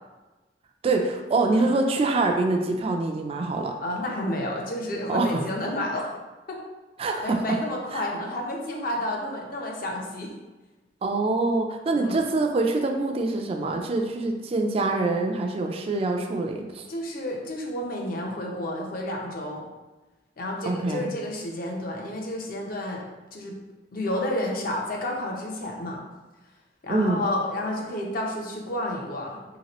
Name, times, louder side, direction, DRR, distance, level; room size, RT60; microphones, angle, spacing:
voice 1, 0.8-3.8 5.1-5.4 7.0-7.6 7.9-8.0 11.0-16.9 20.7-21.1 26.9-27.2, right 2 dB, 35° right, 3 dB, 0.3 m, -25 dB
voice 2, 3.8-6.1 6.5-6.6 7.2-10.3 11.9-12.2 16.9-19.6 20.4-23.0 23.3-23.6 23.9-26.0 26.8-29.6, left 1 dB, 55° left, 0 dB, 0.6 m, -30 dB
3.1 x 2.9 x 2.9 m, 1.1 s
head